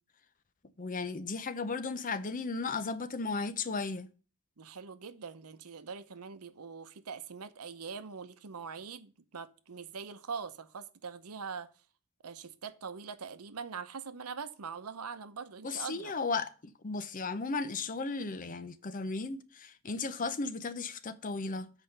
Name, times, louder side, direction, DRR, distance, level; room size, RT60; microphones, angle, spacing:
voice 1, 0.8-4.1 15.6-16.5 16.8-21.7, left 4 dB, 40° left, 0.7 m, -35 dB
voice 2, 4.6-11.7 12.2-16.1, right 5 dB, 90° right, 0.8 m, -43 dB
7.8 x 4.9 x 5.5 m
head